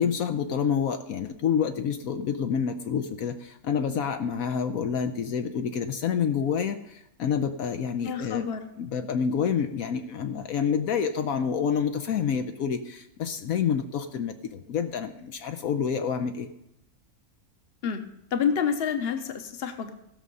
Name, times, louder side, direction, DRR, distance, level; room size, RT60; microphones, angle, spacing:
voice 1, 0.0-8.5 8.8-16.5, left 7 dB, 75° left, 7 dB, 1.1 m, -28 dB
voice 2, 8.0-8.7 17.8-18.1 18.3-20.0, left 7 dB, 45° left, 7 dB, 1.1 m, -28 dB
16.0 x 6.4 x 5.4 m, 0.85 s
omnidirectional pair, 1.5 m